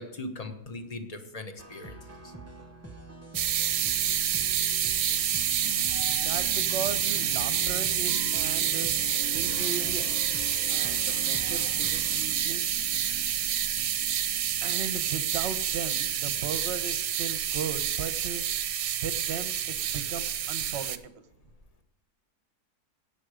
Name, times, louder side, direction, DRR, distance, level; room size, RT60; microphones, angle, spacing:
voice 1, 0.0-2.0 2.2-2.3, left 2 dB, 25° left, 6 dB, 1.2 m, -39 dB
sound 1, 1.6-12.4, right 2 dB, 15° right, 0.7 m, -45 dB
sound 2, 3.3-21.0, right 10 dB, 70° right, 1.1 m, -28 dB
sound 3, 5.6-16.6 17.1-17.2, left 4 dB, 50° left, 2.1 m, -44 dB
voice 2, 6.2-8.9 9.3-10.1 10.7-12.6 14.6-18.4 18.9-21.3, right 6 dB, 50° right, 10 dB, 1.1 m, -37 dB
18.0 x 7.1 x 5.0 m, 0.84 s
omnidirectional pair, 1.7 m